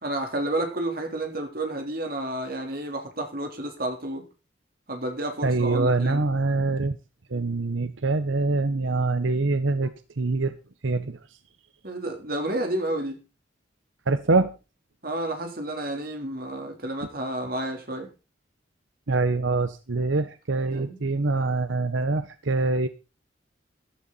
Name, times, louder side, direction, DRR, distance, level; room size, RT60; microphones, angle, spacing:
voice 1, 0.0-4.2 4.9-6.2 11.8-13.2 15.0-18.1 20.7-21.2, right 1 dB, 50° right, 4 dB, 3.5 m, -31 dB
voice 2, 5.4-7.0 7.3-10.6 10.8-11.2 14.1-14.5 19.1-22.9, right 3 dB, 90° right, 12 dB, 0.9 m, -24 dB
14.0 x 12.0 x 4.1 m, 0.30 s
head